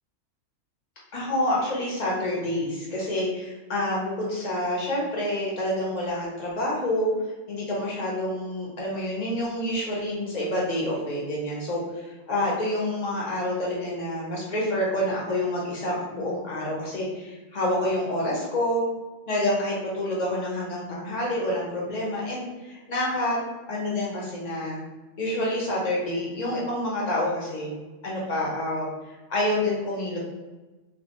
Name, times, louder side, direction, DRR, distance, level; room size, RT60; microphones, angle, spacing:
voice 1, 1.1-7.1 7.5-18.8 19.3-23.4 23.7-24.8 25.2-30.2, left 1 dB, 35° left, -4 dB, 1.0 m, -28 dB
3.2 x 2.6 x 2.9 m, 1.2 s
omnidirectional pair, 1.3 m